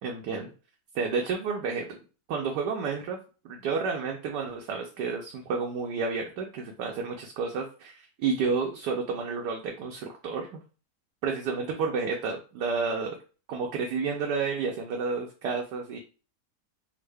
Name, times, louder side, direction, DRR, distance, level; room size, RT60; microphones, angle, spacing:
voice 1, 0.0-0.5 0.9-1.8 2.3-3.2 3.4-10.6 11.2-13.2 13.5-16.0, right 5 dB, 80° right, 1 dB, 1.2 m, -30 dB
3.6 x 2.1 x 3.3 m, 0.35 s
omnidirectional pair, 1.8 m